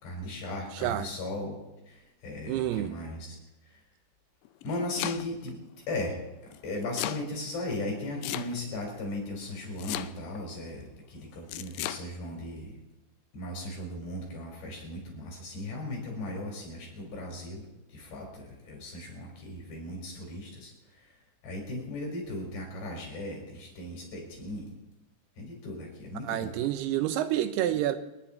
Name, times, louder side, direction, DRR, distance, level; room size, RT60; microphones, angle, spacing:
voice 1, 0.0-1.6 1.9-3.3 4.6-5.6 5.9-6.2 6.6-12.7 13.3-17.7 17.9-20.7 21.4-24.7 25.4-26.5, left 1 dB, 65° left, 0 dB, 6.7 m, -37 dB
voice 2, 0.7-1.1 2.5-2.9 26.2-28.0, right 12 dB, 80° right, 11 dB, 2.4 m, -28 dB
Domestic sounds home sounds, 4.5-5.5 6.5-7.2 8.2-8.8 9.8-10.4 11.5-12.0, left 14 dB, 85° left, 2.3 m, -35 dB
30.0 x 10.0 x 4.4 m, 1.0 s
omnidirectional pair, 5.2 m